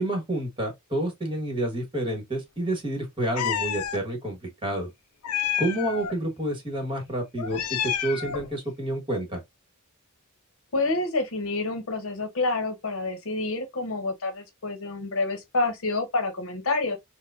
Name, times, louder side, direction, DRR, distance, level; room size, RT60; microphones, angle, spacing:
voice 1, 0.0-4.9 5.6-9.4, right 1 dB, 25° right, 1.3 m, -29 dB
Meow, 3.4-4.0 5.2-6.1 7.4-8.5, left 9 dB, 90° left, 0.5 m, -29 dB
voice 2, 10.7-17.0, left 3 dB, 65° left, 0.8 m, -28 dB
4.7 x 2.1 x 2.5 m
head